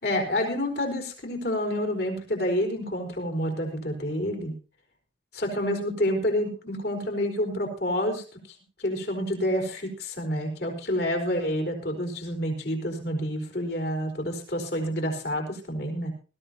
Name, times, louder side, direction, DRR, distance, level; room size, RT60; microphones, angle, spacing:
voice 1, 0.0-4.5 5.3-8.2 8.8-16.1, equal, 55° left, 3 dB, 4.4 m, -28 dB
20.5 x 14.0 x 2.9 m, 0.36 s
head